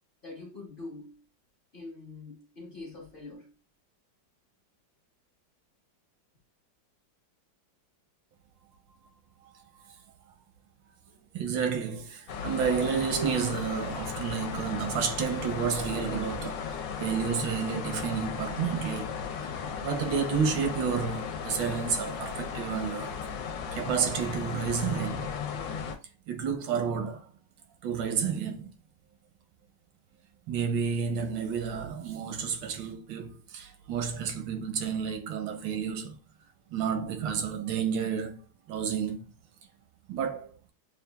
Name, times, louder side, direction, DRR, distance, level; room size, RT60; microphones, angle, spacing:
voice 1, 0.2-1.2 1.7-3.5, left 3 dB, 45° left, 0.7 m, -44 dB
voice 2, 11.3-16.7 17.0-19.2 19.8-23.1 23.7-25.3 26.3-27.3 27.8-28.7 30.5-36.2 36.7-38.4 38.7-39.3 40.1-40.5, right 6 dB, 80° right, 1.5 m, -30 dB
sound 1, 12.3-25.9, left 6 dB, 85° left, 1.4 m, -36 dB
6.8 x 2.4 x 2.2 m
omnidirectional pair, 2.0 m